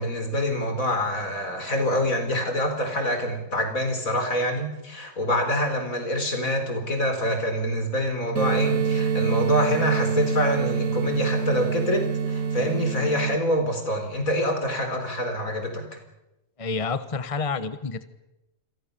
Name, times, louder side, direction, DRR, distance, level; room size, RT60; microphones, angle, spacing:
voice 1, 0.0-15.8, equal, 75° left, 6 dB, 4.7 m, -26 dB
sound 1, 8.4-13.4, right 6 dB, 70° right, 1.4 m, -25 dB
voice 2, 16.6-18.1, left 4 dB, 25° left, 12 dB, 1.2 m, -29 dB
28.5 x 23.0 x 6.9 m, 0.94 s
omnidirectional pair, 1.5 m